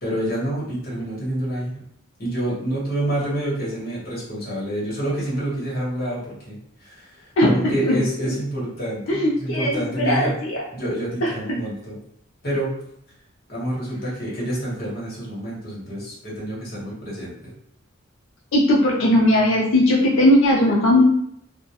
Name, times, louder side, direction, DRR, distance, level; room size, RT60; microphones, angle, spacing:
voice 1, 0.0-1.7 2.2-10.3 10.7-12.0 12.4-12.7 13.5-17.5, right 1 dB, 50° left, -6 dB, 1.0 m, -28 dB
voice 2, 7.4-8.0 9.1-10.7 11.2-11.3 18.5-21.0, left 1 dB, 80° left, -4 dB, 0.5 m, -18 dB
2.2 x 2.1 x 2.8 m, 0.71 s
head